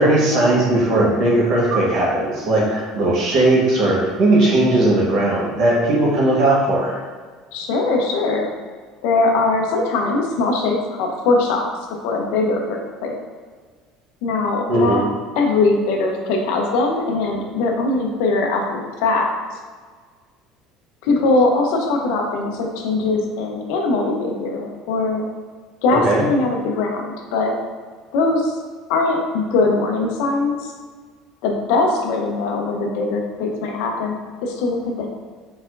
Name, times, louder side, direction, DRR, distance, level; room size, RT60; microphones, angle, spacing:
voice 1, 0.0-7.0 14.7-15.0 25.9-26.2, right 2 dB, 55° right, -4 dB, 1.2 m, -17 dB
voice 2, 7.5-8.5 9.0-13.1 14.2-15.0 15.3-19.6 21.0-25.3 25.8-27.6 28.1-28.6 28.9-30.7 31.4-35.1, left 3 dB, 80° left, 2 dB, 0.7 m, -21 dB
4.4 x 4.2 x 2.5 m, 1.5 s
cardioid pair, 140°, 0 cm